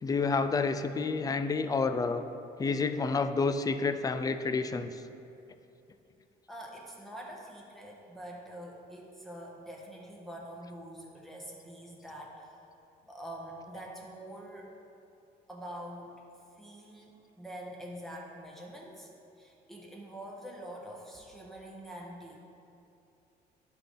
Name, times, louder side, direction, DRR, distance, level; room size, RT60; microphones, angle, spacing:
voice 1, 0.0-2.2 2.6-4.9, left 4 dB, 20° left, 10 dB, 0.4 m, -29 dB
voice 2, 6.5-12.6 13.1-14.7 15.5-16.1 16.6-19.1 19.4-22.4, right 1 dB, ahead, -3 dB, 1.3 m, -45 dB
11.5 x 4.1 x 3.8 m, 2.7 s
cardioid pair, 110°, 17 cm